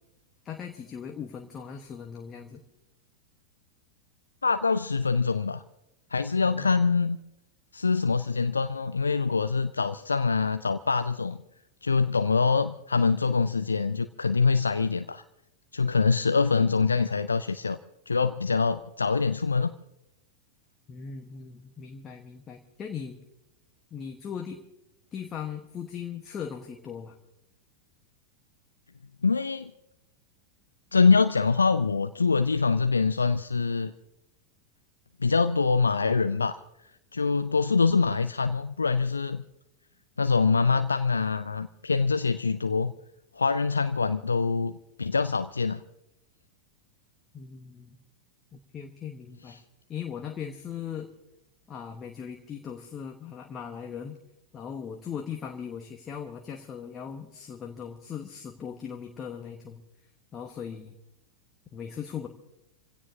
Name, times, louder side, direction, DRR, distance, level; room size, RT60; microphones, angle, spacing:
voice 1, 0.4-2.6 6.4-6.8 20.9-23.2 23.9-24.6 25.1-27.2 47.3-48.0 48.5-49.6 49.9-51.1 51.7-54.2 54.5-59.8 60.3-60.9 61.7-62.3, left 7 dB, 25° left, 3 dB, 1.2 m, -39 dB
voice 2, 4.4-5.6 6.1-7.2 7.7-11.4 11.8-15.2 15.7-17.8 18.1-19.7 29.2-29.7 30.9-33.9 35.2-36.6 37.1-39.4 40.2-42.9 43.4-44.7 45.0-45.8 49.5-49.6, left 4 dB, 75° left, 11 dB, 0.5 m, -24 dB
27.5 x 16.5 x 2.8 m, 0.88 s
figure-of-eight pair, 90°, 0 cm